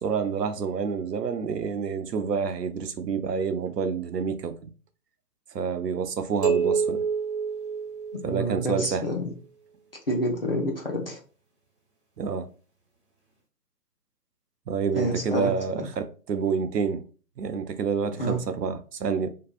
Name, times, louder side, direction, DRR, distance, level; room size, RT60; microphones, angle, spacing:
voice 1, 0.0-4.7 5.5-7.0 8.2-9.0 12.2-12.5 14.7-17.0 17.4-19.3, right 6 dB, 85° right, 0.6 m, -28 dB
sound 1, 6.4-8.8, right 6 dB, 45° right, 1.0 m, -28 dB
voice 2, 8.2-9.2 10.1-11.2 14.9-15.5 18.2-18.4, equal, 40° left, 0.5 m, -28 dB
2.6 x 2.3 x 2.3 m
figure-of-eight pair, 150°, 48 cm